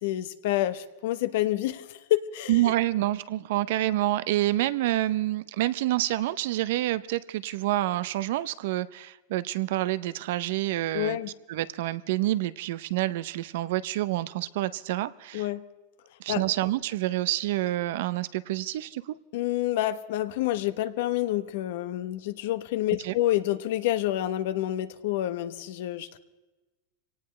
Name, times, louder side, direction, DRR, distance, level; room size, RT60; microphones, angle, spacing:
voice 1, 0.0-2.6 10.9-11.3 15.3-15.6 16.3-16.4 19.3-26.2, left 14 dB, 65° left, 13 dB, 1.0 m, -28 dB
voice 2, 2.5-11.2 11.5-15.5 16.2-19.2 23.0-23.1, right 15 dB, 65° right, 16 dB, 0.6 m, -28 dB
24.5 x 18.0 x 3.3 m, 1.2 s
supercardioid pair, 155°, 0 cm